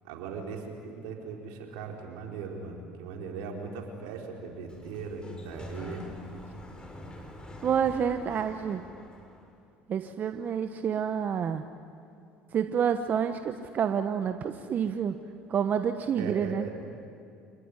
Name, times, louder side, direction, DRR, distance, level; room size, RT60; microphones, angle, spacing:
voice 1, 0.0-6.0 16.2-16.7, right 5 dB, 75° right, 1 dB, 4.5 m, -39 dB
Sliding door, 4.4-9.5, left 1 dB, 20° left, 4.9 m, -45 dB
voice 2, 7.6-8.8 9.9-11.6 12.5-15.1 15.5-16.7, right 7 dB, 45° right, 8 dB, 1.1 m, -28 dB
27.5 x 19.5 x 9.8 m, 2.5 s
hypercardioid pair, 80°, 4 cm